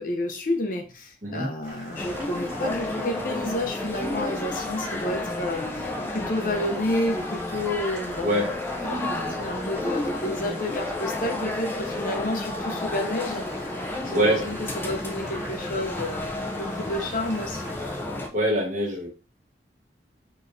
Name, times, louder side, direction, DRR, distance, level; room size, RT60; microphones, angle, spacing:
voice 1, 0.0-8.6 8.9-13.5 14.0-17.7, left 1 dB, 50° left, 3 dB, 0.6 m, -30 dB
Boiling, 1.6-18.0, right 1 dB, 20° right, 1.8 m, -43 dB
sound 1, 2.0-18.3, left 2 dB, 10° left, 0.4 m, -31 dB
voice 2, 14.1-14.4 18.3-19.1, equal, 45° right, 0 dB, 1.2 m, -24 dB
4.0 x 3.1 x 2.6 m, 0.33 s
head